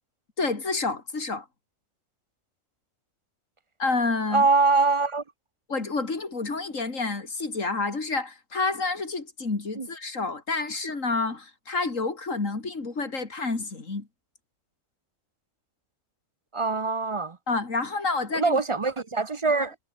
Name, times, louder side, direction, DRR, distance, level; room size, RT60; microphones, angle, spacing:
voice 1, 0.4-1.5 3.8-4.5 5.7-14.1 17.5-18.6, left 3 dB, 70° left, 3.5 m, -29 dB
voice 2, 4.3-5.2 9.8-9.9 16.5-17.4 18.3-19.7, right 4 dB, 30° right, 0.6 m, -23 dB
omnidirectional pair, 1.4 m